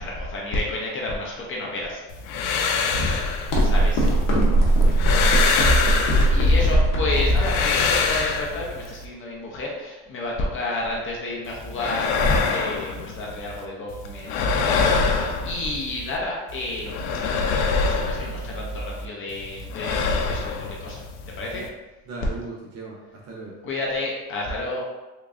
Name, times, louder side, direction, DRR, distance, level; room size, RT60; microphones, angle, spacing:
voice 1, 0.0-2.0 2.9-3.3 3.6-4.0 4.5-5.1 5.9-21.0 21.4-21.7 23.6-24.8, left 2 dB, 30° left, -2 dB, 0.5 m, -30 dB
sound 1, 2.1-4.3 4.7-6.7 7.1-9.0 11.4-13.6 13.9-16.2 16.5-19.0 19.3-21.7, left 4 dB, 75° left, 0.5 m, -25 dB
sound 2, 3.5-8.5, right 1 dB, 55° left, 0.9 m, -20 dB
voice 2, 5.8-6.5 21.5-21.7 22.1-23.6, right 3 dB, 40° right, -2 dB, 0.6 m, -38 dB
3.5 x 3.0 x 2.5 m, 1.1 s
cardioid pair, 150°, 40 cm